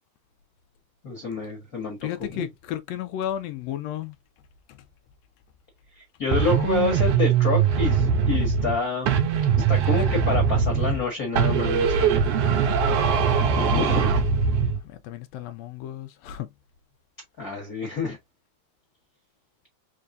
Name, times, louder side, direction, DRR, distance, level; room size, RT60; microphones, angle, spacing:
voice 1, 1.0-2.0 2.3-2.5 5.9-9.2 9.7-12.2 13.4-14.1 17.4-18.2, left 4 dB, 45° left, 1.2 m, -28 dB
voice 2, 2.0-4.1 4.7-4.8 9.7-9.8 10.1-10.3 12.4-12.6 14.8-16.5, left 11 dB, 90° left, 1.4 m, -33 dB
sound 1, 6.3-8.8 9.1-11.1 11.4-14.8, right 7 dB, 70° right, 1.5 m, -22 dB
4.7 x 3.3 x 2.6 m
omnidirectional pair, 3.5 m